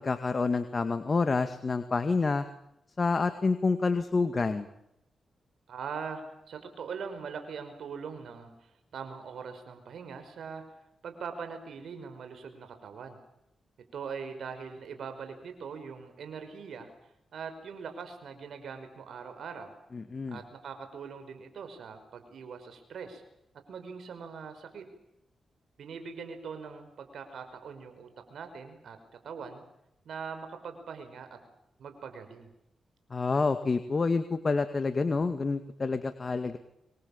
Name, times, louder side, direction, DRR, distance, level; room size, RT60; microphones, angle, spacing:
voice 1, 0.0-2.5 3.0-4.7 19.9-20.4 33.1-36.6, left 4 dB, 45° left, 9 dB, 2.1 m, -28 dB
voice 2, 5.7-8.5 8.9-10.6 11.0-13.2 13.9-16.9 17.3-19.7 20.3-23.2 23.7-24.8 25.8-29.0 29.2-29.6 30.0-31.3 31.8-32.5, right 6 dB, 75° right, 7 dB, 5.5 m, -41 dB
26.5 x 23.5 x 7.3 m, 0.81 s
cardioid pair, 55°, 0 cm